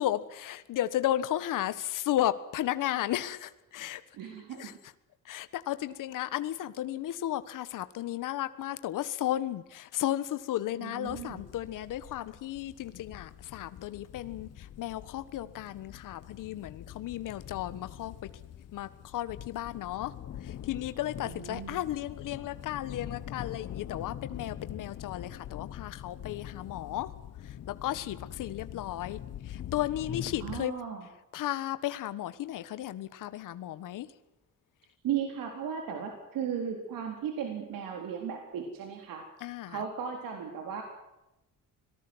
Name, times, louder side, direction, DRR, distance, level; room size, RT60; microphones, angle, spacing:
voice 1, 0.0-4.0 4.6-4.7 5.2-18.1 18.7-20.1 20.4-27.1 27.4-30.7 31.3-34.1 39.4-39.8, left 13 dB, 70° left, 13 dB, 1.4 m, -34 dB
voice 2, 4.2-4.7 10.8-11.4 21.2-21.8 30.4-31.1 35.0-39.3 39.7-40.8, right 8 dB, 90° right, 4 dB, 4.1 m, -36 dB
sound 1, 11.1-30.7, left 10 dB, 50° left, 1.3 m, -44 dB
26.0 x 19.0 x 7.9 m, 0.94 s
cardioid pair, 175°, 33 cm